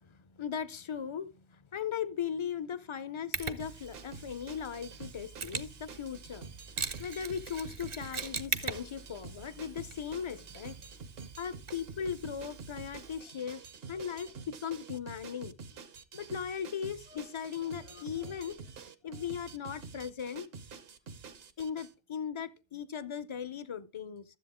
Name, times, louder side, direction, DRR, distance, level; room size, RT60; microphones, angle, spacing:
voice 1, 0.0-6.5 7.0-10.8 11.4-13.6 13.9-15.6 16.1-18.6 19.0-20.5 21.6-24.2, left 7 dB, 40° left, 0.4 m, -38 dB
Mechanisms, 3.3-13.2, right 5 dB, 35° right, 0.6 m, -42 dB
sound 1, 3.6-21.9, right 5 dB, 65° right, 1.0 m, -48 dB
13.0 x 7.6 x 3.6 m
omnidirectional pair, 1.1 m